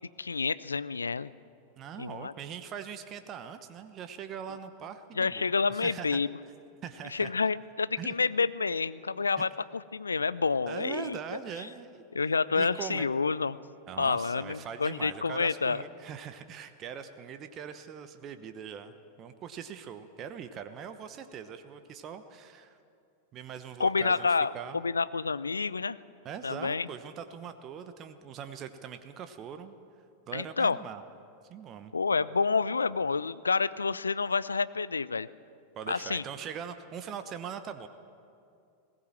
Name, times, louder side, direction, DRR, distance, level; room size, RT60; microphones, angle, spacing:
voice 1, 0.2-1.3 2.0-2.3 5.2-6.3 7.1-11.2 12.1-13.6 14.0-15.8 23.8-26.0 26.4-26.9 30.3-30.8 31.9-35.3 35.9-36.2, left 4 dB, 75° left, 18 dB, 0.5 m, -29 dB
voice 2, 1.8-6.2 6.8-7.3 8.0-8.1 9.4-9.5 10.7-12.0 12.5-13.1 13.9-22.8 23.3-24.8 26.2-29.8 30.3-31.0 31.5-31.9 35.8-37.9, right 8 dB, 30° right, 9 dB, 1.1 m, -41 dB
20.0 x 17.5 x 7.4 m, 2.5 s
figure-of-eight pair, 90°, 0 cm